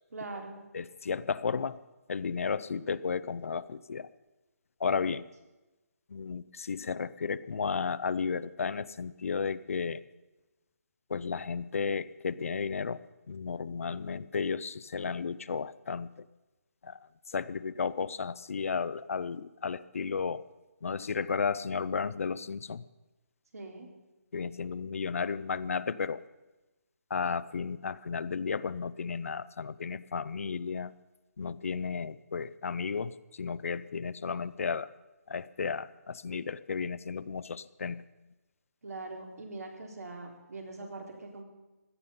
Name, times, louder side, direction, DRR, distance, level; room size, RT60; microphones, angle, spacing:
voice 1, 0.1-0.6 23.5-23.9 38.8-41.4, right 3 dB, 70° right, 2 dB, 3.8 m, -42 dB
voice 2, 0.7-1.8 2.1-4.1 4.8-5.3 6.1-10.0 11.1-16.2 16.8-20.5 20.8-22.8 24.3-26.2 27.1-30.9 31.4-34.9 35.3-38.0, left 5 dB, 60° left, 16 dB, 0.6 m, -33 dB
17.0 x 12.5 x 5.5 m, 1.1 s
hypercardioid pair, 175°, 9 cm